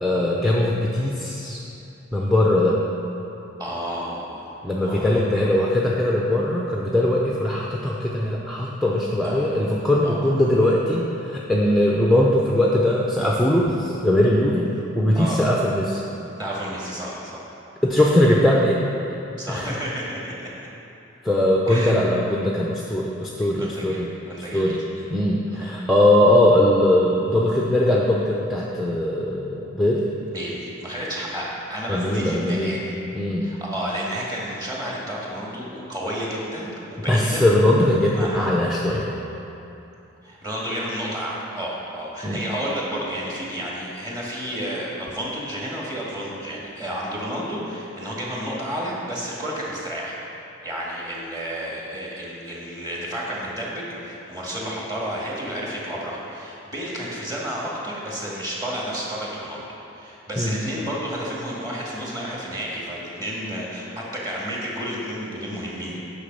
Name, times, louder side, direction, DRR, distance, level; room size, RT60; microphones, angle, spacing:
voice 1, 0.0-1.6 2.1-2.8 4.6-16.0 17.8-18.9 19.5-19.8 21.2-24.1 24.5-24.8 25.1-30.1 31.9-32.8 33.1-33.5 37.1-39.1 42.2-42.4 60.4-60.5, left 1 dB, ahead, -3 dB, 0.6 m, -20 dB
voice 2, 3.6-5.2 9.2-9.6 10.0-10.3 15.1-15.4 16.4-17.4 19.4-20.5 21.7-22.0 23.4-25.0 25.6-25.8 30.3-32.9 33.4-37.4 38.1-38.5 40.2-50.2 50.6-59.6 59.9-66.0, equal, 20° right, -5 dB, 1.9 m, -31 dB
10.0 x 6.2 x 5.3 m, 2.9 s
head